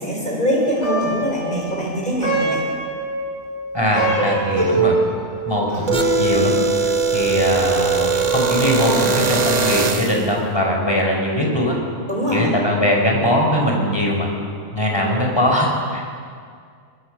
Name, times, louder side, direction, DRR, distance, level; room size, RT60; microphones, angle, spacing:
voice 1, 0.0-2.6 12.1-12.5, equal, 35° left, -2 dB, 6.0 m, -22 dB
Plucked string instrument, 0.6-10.0, right 1 dB, 55° left, 7.5 m, -25 dB
voice 2, 3.7-5.0 5.5-11.8 12.3-14.3 14.7-16.0, equal, 20° left, -1 dB, 5.1 m, -21 dB
sound 1, 5.9-10.3, right 5 dB, 35° right, 0.9 m, -20 dB
22.5 x 22.5 x 6.5 m, 2.1 s
omnidirectional pair, 1.4 m